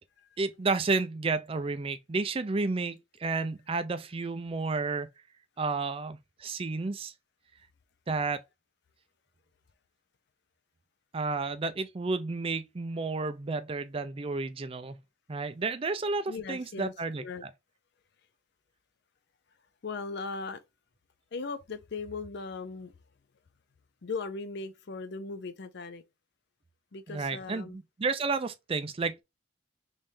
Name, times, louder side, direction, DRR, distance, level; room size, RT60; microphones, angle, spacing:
voice 1, 0.4-5.1 5.6-7.1 8.1-8.4 11.1-15.0 15.3-17.2 27.1-29.2, right 3 dB, 30° right, 0.4 m, -31 dB
voice 2, 16.3-17.5 19.8-20.6 21.3-22.9 24.0-26.0 26.9-27.8, left 4 dB, 55° left, 0.5 m, -38 dB
3.5 x 3.1 x 2.6 m
head